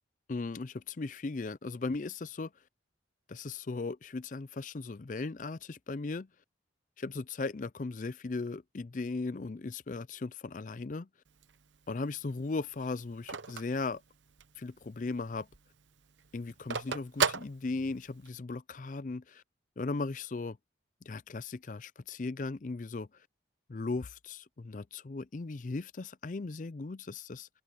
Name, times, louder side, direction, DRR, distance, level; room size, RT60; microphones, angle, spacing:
voice 1, 0.3-2.5 3.3-6.3 7.0-11.1 11.9-14.0 14.6-15.5 16.3-19.4 19.8-20.6 21.0-23.1 23.7-27.5, left 3 dB, 45° left, 0.5 m, -37 dB
Telephone, 11.3-14.7 15.1-15.2 15.4-18.3, right 5 dB, 85° right, 0.9 m, -35 dB
head